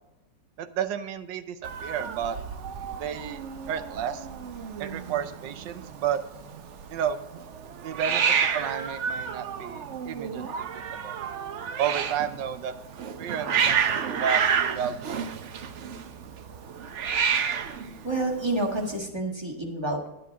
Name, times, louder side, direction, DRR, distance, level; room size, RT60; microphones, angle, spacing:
voice 1, 0.6-1.6 1.8-2.4 3.0-3.4 3.7-4.2 4.8-6.2 6.9-7.2 7.8-10.7 11.0-11.1 11.8-12.7 13.1-15.3, right 8 dB, 80° right, 11 dB, 1.4 m, -31 dB
Hiss, 1.6-19.0, right 7 dB, 60° right, 0.7 m, -30 dB
voice 2, 18.0-20.1, right 2 dB, 15° right, 1 dB, 1.4 m, -29 dB
10.0 x 8.3 x 3.6 m, 0.95 s
omnidirectional pair, 2.0 m